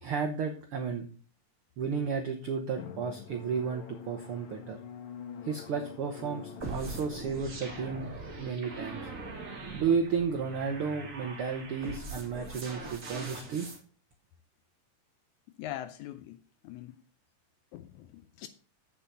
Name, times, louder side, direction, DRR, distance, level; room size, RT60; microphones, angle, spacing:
voice 1, 0.0-1.1 1.8-4.8 5.4-8.1 8.4-9.1 9.7-13.7, right 6 dB, 80° right, 1.2 m, -32 dB
Drum, 2.8-12.1, left 6 dB, 65° left, 2.3 m, -48 dB
sound 1, 6.6-13.8, right 3 dB, 35° right, 1.4 m, -42 dB
voice 2, 15.6-16.4 16.6-17.0 17.7-18.5, left 13 dB, 85° left, 1.7 m, -42 dB
8.8 x 6.8 x 5.5 m
omnidirectional pair, 3.9 m